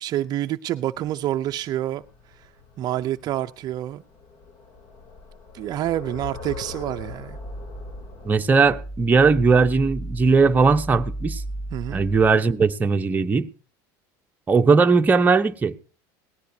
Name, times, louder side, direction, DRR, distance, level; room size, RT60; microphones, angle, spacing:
voice 1, 0.0-2.0 2.3-2.5 2.8-4.0 5.5-7.4 11.7-12.0, right 13 dB, 40° right, 0.5 m, -27 dB
sound 1, 0.9-8.3, left 4 dB, 50° left, 3.2 m, -42 dB
sound 2, 7.3-12.3, right 1 dB, 10° left, 4.0 m, -35 dB
voice 2, 8.2-11.4 11.9-13.5 14.5-15.8, right 4 dB, 15° right, 0.8 m, -18 dB
18.5 x 15.5 x 2.8 m
cardioid pair, 140°, 10 cm